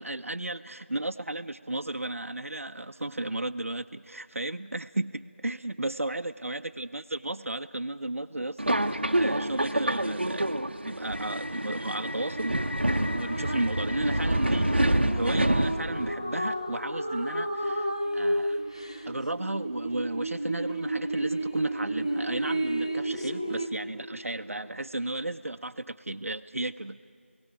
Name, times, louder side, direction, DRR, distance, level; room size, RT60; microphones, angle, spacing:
voice 1, 0.0-10.4 10.8-12.7 13.1-18.6 19.1-27.0, right 2 dB, 85° right, 7 dB, 0.6 m, -34 dB
Subway metro underground, 8.6-16.1, right 1 dB, 50° right, 0.7 m, -27 dB
sound 1, 11.0-23.7, right 1 dB, 25° left, 0.8 m, -32 dB
28.5 x 18.0 x 5.9 m, 2.6 s
figure-of-eight pair, 180°, 7 cm